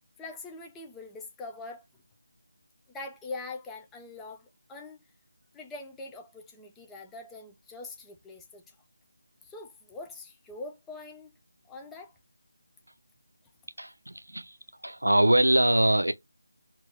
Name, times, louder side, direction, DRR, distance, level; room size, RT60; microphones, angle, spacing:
voice 1, 0.2-1.8 2.9-5.0 5.5-8.8 9.4-11.4 11.6-12.2, left 3 dB, 5° left, 0.5 m, -43 dB
voice 2, 13.8-14.6 14.8-16.1, right 1 dB, 75° right, 0.7 m, -23 dB
3.7 x 2.6 x 3.2 m
figure-of-eight pair, 160°, 0 cm